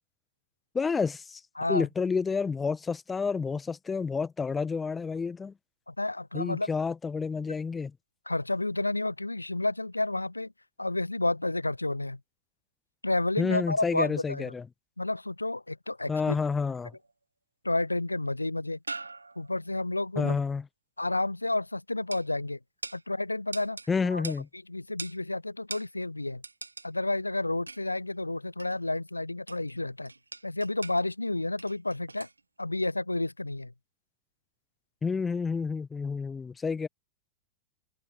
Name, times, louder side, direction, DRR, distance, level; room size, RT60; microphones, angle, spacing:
voice 1, 0.7-1.4 1.7-5.5 6.3-7.9 13.4-14.7 16.1-16.9 20.2-20.7 23.9-24.5 35.0-36.9, left 5 dB, 15° left, 1.2 m, -29 dB
voice 2, 1.6-1.9 5.9-6.7 8.3-10.5 10.8-12.2 13.0-14.5 15.0-16.4 17.6-18.8 19.4-20.4 21.0-22.6 22.9-23.8 24.1-24.2 24.7-26.4 26.8-30.1 30.4-32.3 32.6-33.7, left 2 dB, 85° left, 0.6 m, -30 dB
sound 1, 16.6-17.1 18.3-18.4 18.8-19.7 22.1-22.3 22.8-23.0 23.5-23.9 24.2-24.4 25.0-25.2 25.7-25.9 26.4-26.9 27.7-27.9 28.6-28.8 29.5-29.8 30.1-31.0 31.6-32.4 32.8-32.9, right 3 dB, 80° right, 1.9 m, -42 dB
figure-of-eight pair, 90°, 0 cm